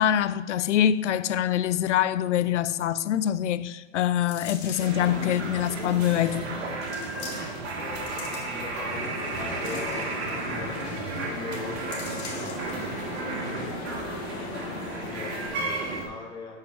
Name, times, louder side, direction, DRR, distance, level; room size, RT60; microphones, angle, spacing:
voice 1, 0.0-6.6, left 10 dB, 80° left, 0.5 m, -25 dB
sound 1, 4.2-5.1 5.8-5.9 6.8-7.7 7.9-8.8 9.2-10.4 10.8-10.9 11.2-11.4 11.9-12.7 13.2-13.3, left 5 dB, 65° left, 2.5 m, -42 dB
sound 2, 4.8-16.1, right 3 dB, 60° right, 1.6 m, -33 dB
voice 2, 7.8-14.1 15.0-16.6, left 3 dB, 15° left, 1.9 m, -42 dB
sound 3, 8.9-15.5, left 5 dB, 35° left, 1.0 m, -39 dB
7.2 x 4.8 x 4.6 m
hypercardioid pair, 110°, 35 cm